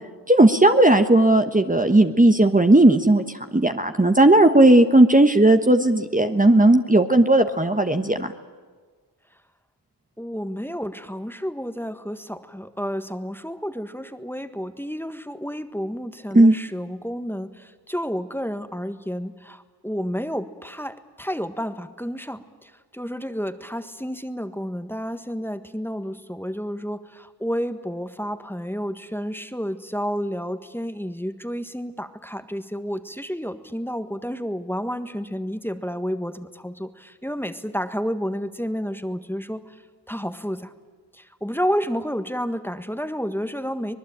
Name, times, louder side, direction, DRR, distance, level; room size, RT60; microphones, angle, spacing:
voice 1, 0.3-3.2 3.5-8.3 16.3-16.5, right 1 dB, 20° right, 6 dB, 1.3 m, -16 dB
voice 2, 10.2-39.6 40.1-40.7 41.1-44.0, equal, 5° left, 9 dB, 1.6 m, -30 dB
25.0 x 20.0 x 8.9 m, 1.5 s
wide cardioid pair, 55°, 41 cm